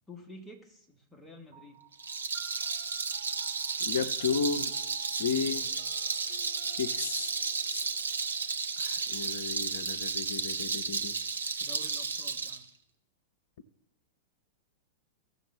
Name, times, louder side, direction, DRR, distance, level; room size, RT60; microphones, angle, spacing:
voice 1, 0.1-1.8 11.6-12.7, left 1 dB, 10° left, 1 dB, 1.4 m, -50 dB
sound 1, 1.5-10.3, right 6 dB, 40° right, 2.3 m, -56 dB
Rattle, 1.9-12.6, right 5 dB, 75° right, 0.7 m, -33 dB
voice 2, 3.8-4.8 5.2-5.7 6.7-7.3 7.7-7.8 8.8-11.1, left 6 dB, 55° left, 10 dB, 0.6 m, -33 dB
16.0 x 6.8 x 3.4 m, 0.79 s
figure-of-eight pair, 95°, 0 cm